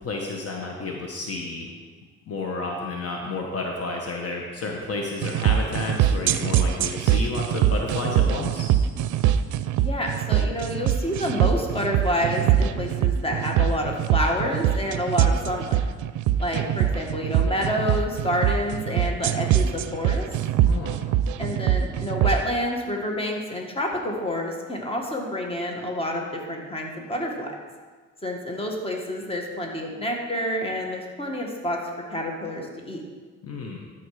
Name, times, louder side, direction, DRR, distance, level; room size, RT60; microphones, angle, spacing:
voice 1, 0.0-1.7 2.3-8.7 20.6-21.0 33.4-33.9, left 3 dB, 50° left, 0 dB, 1.2 m, -31 dB
sound 1, 5.2-22.4, right 10 dB, 80° right, 0.5 m, -23 dB
voice 2, 9.8-15.8 16.4-20.3 21.4-27.5 28.2-31.8 32.1-33.0, left 1 dB, 20° left, 0 dB, 1.6 m, -28 dB
12.5 x 4.5 x 4.9 m, 1.5 s
cardioid pair, 90°, 30 cm